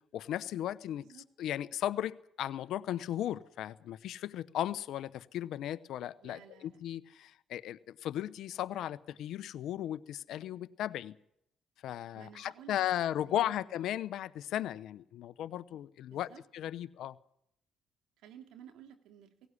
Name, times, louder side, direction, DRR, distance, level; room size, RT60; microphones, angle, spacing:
voice 1, 0.1-1.0 1.4-11.1 11.8-17.2, left 12 dB, 75° left, 15 dB, 0.9 m, -36 dB
voice 2, 6.2-6.8 12.1-13.6 16.1-16.4 18.2-19.3, right 9 dB, 80° right, 6 dB, 2.7 m, -54 dB
17.5 x 17.0 x 9.9 m, 0.72 s
supercardioid pair, 65°, 0 cm